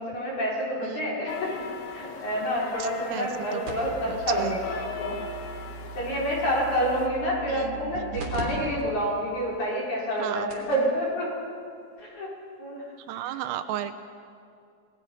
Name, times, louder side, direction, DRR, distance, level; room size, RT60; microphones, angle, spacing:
voice 1, 0.0-1.5 1.8-5.2 6.0-11.3 12.0-12.3 12.6-12.8 13.1-13.4, equal, 35° left, -5 dB, 6.2 m, -28 dB
sound 1, 1.3-7.1, left 4 dB, 90° left, 4.6 m, -40 dB
sound 2, 3.6-8.4 8.8-8.9 9.5-9.6 10.2-10.3 10.5-10.8 12.0-12.1, right 4 dB, 40° right, 4.0 m, -39 dB
voice 2, 4.1-4.6 7.5-8.2 8.5-8.6 10.2-10.5 13.1-13.9, right 12 dB, 85° right, 9 dB, 3.4 m, -34 dB
28.5 x 20.5 x 5.7 m, 2.3 s
omnidirectional pair, 5.9 m